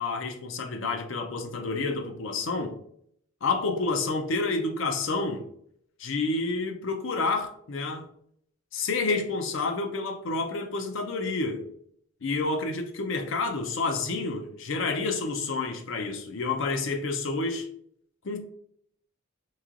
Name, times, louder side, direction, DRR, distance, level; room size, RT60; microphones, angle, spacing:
voice 1, 0.0-2.8 3.4-5.4 6.0-8.1 8.7-11.7 12.2-17.7 18.2-18.4, left 3 dB, 65° left, 5 dB, 0.5 m, -29 dB
3.1 x 2.8 x 2.4 m, 0.66 s
head